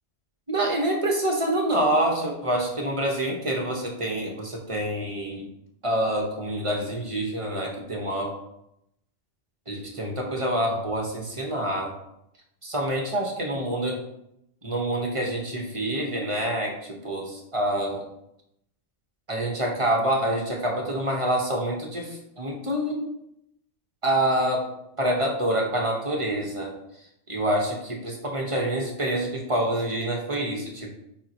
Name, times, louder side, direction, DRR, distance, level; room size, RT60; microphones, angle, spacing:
voice 1, 0.5-5.5 5.8-8.3 9.7-11.9 12.6-14.0 14.6-18.0 19.3-23.0 24.0-24.7 25.0-26.7 27.3-30.9, right 1 dB, 25° right, 0 dB, 1.4 m, -26 dB
9.6 x 4.3 x 3.0 m, 0.80 s
omnidirectional pair, 1.3 m